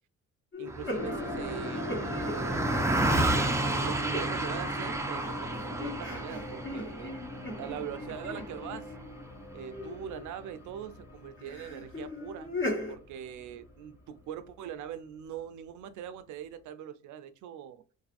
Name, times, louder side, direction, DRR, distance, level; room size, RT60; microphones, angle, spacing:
sound 1, 0.5-4.8 5.1-9.2 9.7-10.3 11.4-13.0, left 2 dB, 40° left, 1.1 m, -39 dB
voice 1, 0.6-2.7 3.7-7.2 7.6-8.9 9.5-12.5 12.9-17.8, right 9 dB, 75° right, 0.5 m, -42 dB
Car passing by, 0.7-10.3, right 1 dB, 10° right, 0.3 m, -32 dB
sound 2, 1.0-13.2 13.5-13.6, left 1 dB, 60° left, 0.8 m, -41 dB
2.6 x 2.4 x 2.5 m
cardioid pair, 90°, 30 cm